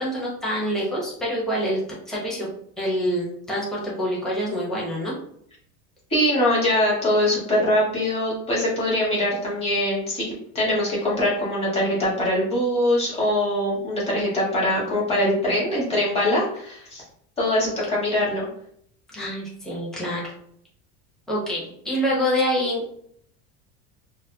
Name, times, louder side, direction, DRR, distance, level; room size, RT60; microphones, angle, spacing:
voice 1, 0.0-2.5 2.8-5.1 19.1-20.3 21.3-23.0, equal, ahead, -6 dB, 0.8 m, -26 dB
voice 2, 6.1-17.0 17.4-18.5, left 1 dB, 15° left, -6 dB, 1.4 m, -23 dB
4.0 x 2.1 x 2.7 m, 0.67 s
supercardioid pair, 145°, 36 cm